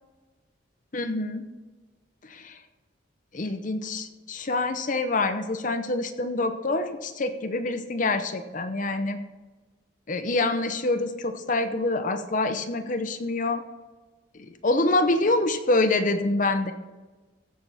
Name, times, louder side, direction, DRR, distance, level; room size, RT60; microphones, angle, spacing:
voice 1, 0.9-1.5 2.2-2.6 3.3-9.2 10.1-13.6 14.3-16.7, left 2 dB, 40° left, 8 dB, 0.7 m, -26 dB
15.5 x 6.8 x 4.2 m, 1.2 s
head